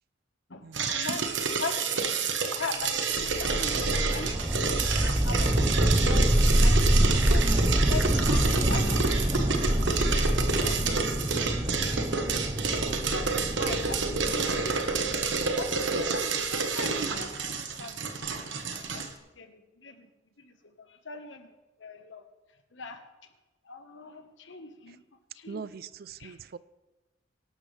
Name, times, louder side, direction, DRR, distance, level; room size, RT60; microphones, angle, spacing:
voice 1, 0.5-7.5 7.9-9.6 9.8-11.0 12.7-12.8 13.1-13.3 13.5-15.2 15.6-18.1 18.7-19.1 19.4-20.1 20.4-21.5 21.8-22.2 22.7-23.0 23.7-25.0 25.3-25.8 26.2-26.4, left 3 dB, 75° left, 7 dB, 1.4 m, -41 dB
sound 1, 0.7-19.1, right 5 dB, 75° right, 1.2 m, -29 dB
sound 2, 3.2-16.3, right 1 dB, 20° right, 0.7 m, -26 dB
voice 2, 25.5-26.6, right 5 dB, 55° right, 18 dB, 0.4 m, -41 dB
23.0 x 11.5 x 3.4 m, 1.1 s
head